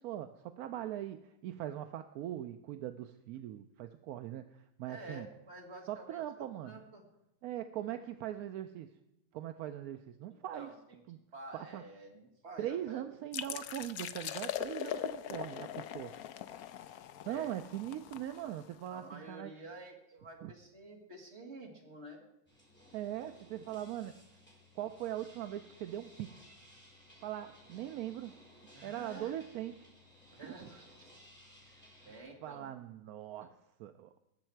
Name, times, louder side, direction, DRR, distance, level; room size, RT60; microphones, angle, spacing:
voice 1, 0.0-5.3 5.9-6.8 7.4-9.0 9.3-10.7 11.1-11.2 11.5-11.8 12.6-16.2 17.2-19.5 20.4-20.5 22.9-24.2 24.8-26.4 27.2-28.4 28.8-29.9 30.3-30.7 32.0-32.1 32.4-34.1, right 12 dB, 70° right, 9 dB, 0.9 m, -41 dB
voice 2, 4.9-7.0 10.5-11.0 11.3-13.1 16.1-16.3 16.6-17.6 18.9-22.2 28.7-29.3 30.4-31.1 31.6-32.7, right 2 dB, 40° right, 1 dB, 2.3 m, -50 dB
sound 1, 13.3-18.9, left 10 dB, 70° left, 1.0 m, -41 dB
sound 2, 22.5-32.2, left 1 dB, 5° left, 3.5 m, -59 dB
19.0 x 7.3 x 4.5 m, 0.88 s
omnidirectional pair, 1.9 m